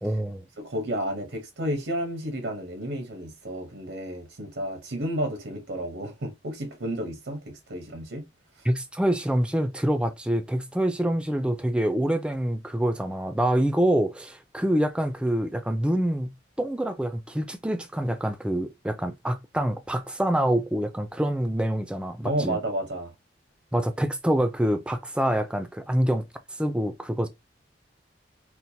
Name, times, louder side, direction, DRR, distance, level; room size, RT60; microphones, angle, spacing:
voice 1, 0.0-0.5 8.6-16.3 16.6-22.6 23.7-27.3, right 1 dB, 5° right, 0.4 m, -26 dB
voice 2, 0.6-8.3 8.6-8.7 22.2-23.1, right 1 dB, 85° right, 0.8 m, -31 dB
4.4 x 2.1 x 2.7 m
head